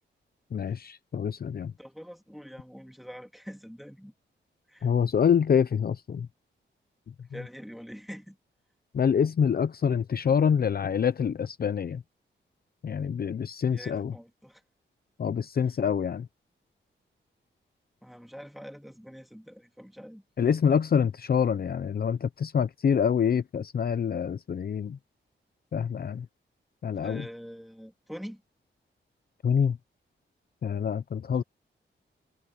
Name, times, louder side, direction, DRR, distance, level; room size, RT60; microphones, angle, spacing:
voice 1, 0.5-1.7 4.8-6.3 8.9-12.0 12.8-14.1 15.2-16.3 20.4-25.0 25.7-26.3 26.8-27.2 29.4-29.8 30.6-31.4, left 7 dB, 50° left, 0.7 m, -26 dB
voice 2, 1.8-4.1 4.7-4.9 7.3-8.4 13.7-14.6 18.0-20.2 26.9-28.4, equal, ahead, 3.3 m, -44 dB
wide cardioid pair, 125°, 20 cm